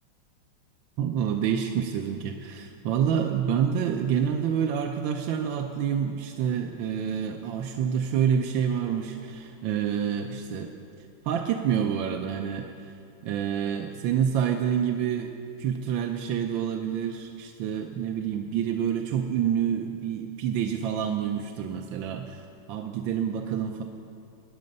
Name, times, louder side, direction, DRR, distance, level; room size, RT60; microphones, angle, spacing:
voice 1, 1.0-10.7 11.2-12.9 13.2-15.3 15.6-23.8, right 8 dB, 75° right, 3 dB, 1.4 m, -28 dB
20.0 x 9.6 x 5.3 m, 2.5 s
omnidirectional pair, 2.3 m